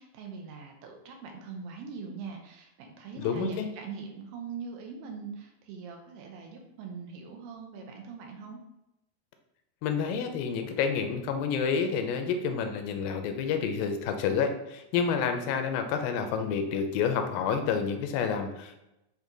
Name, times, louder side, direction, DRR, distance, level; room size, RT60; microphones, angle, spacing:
voice 1, 0.0-8.6, right 5 dB, 80° right, 2 dB, 2.6 m, -42 dB
voice 2, 3.2-3.7 9.8-18.8, left 6 dB, 85° left, 6 dB, 2.4 m, -29 dB
8.4 x 2.9 x 3.9 m, 0.89 s
omnidirectional pair, 4.0 m